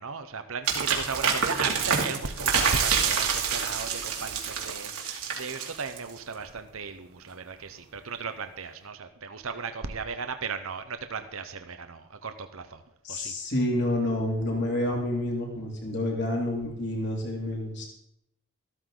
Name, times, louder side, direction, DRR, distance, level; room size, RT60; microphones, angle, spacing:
voice 1, 0.0-12.8 13.1-13.3, right 5 dB, 70° right, 8 dB, 1.0 m, -36 dB
sound 1, 0.7-6.2, right 6 dB, 90° right, 2.6 m, -27 dB
voice 2, 13.0-17.8, left 1 dB, 50° left, -1 dB, 3.1 m, -29 dB
14.0 x 13.0 x 3.9 m, 0.78 s
head